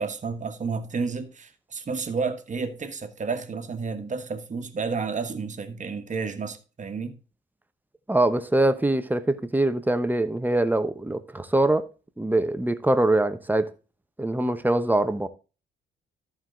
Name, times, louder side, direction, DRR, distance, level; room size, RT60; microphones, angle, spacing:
voice 1, 0.0-7.2, right 4 dB, 40° right, 1.4 m, -31 dB
voice 2, 8.1-11.9 12.2-13.7 14.2-15.3, right 1 dB, 10° right, 0.9 m, -23 dB
13.5 x 4.7 x 3.9 m
cardioid pair, 90°, 20 cm